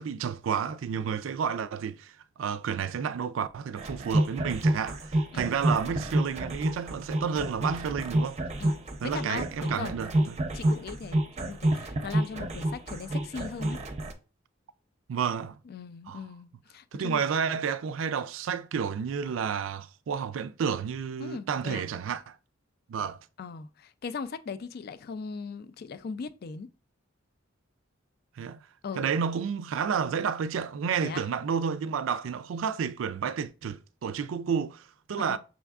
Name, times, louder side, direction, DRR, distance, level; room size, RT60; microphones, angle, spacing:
voice 1, 0.0-8.4 9.0-10.4 15.1-15.6 16.1-16.2 16.9-22.3 22.9-23.2 28.4-28.6 29.0-35.4, right 7 dB, 80° right, 0.4 m, -31 dB
sound 1, 3.8-14.1, right 1 dB, 35° right, 0.6 m, -29 dB
voice 2, 5.3-5.7 8.6-8.8 9.0-13.8 15.7-17.2 19.3-19.4 21.2-21.9 23.4-26.7 28.8-29.1 31.0-31.2 35.3-35.4, left 5 dB, 50° left, 0.4 m, -39 dB
6.2 x 3.4 x 2.3 m
head